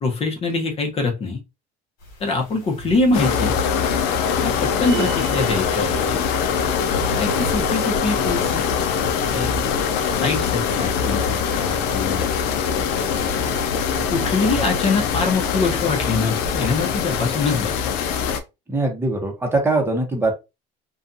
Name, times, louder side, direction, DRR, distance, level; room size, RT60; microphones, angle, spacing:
voice 1, 0.0-1.4 2.2-3.5 4.4-6.2 7.2-8.6 9.3-9.6 10.2-12.3 13.1-13.3 14.1-18.0, left 3 dB, 35° left, 0.8 m, -24 dB
sound 1, 2.0-17.4, equal, 55° left, 1.5 m, -36 dB
sound 2, 3.1-18.4, left 7 dB, 70° left, 0.5 m, -23 dB
sound 3, 4.8-5.7, right 12 dB, 60° right, 0.5 m, -33 dB
voice 2, 18.7-20.3, right 2 dB, 15° right, 0.8 m, -21 dB
2.5 x 2.3 x 2.5 m
supercardioid pair, 110°, 18 cm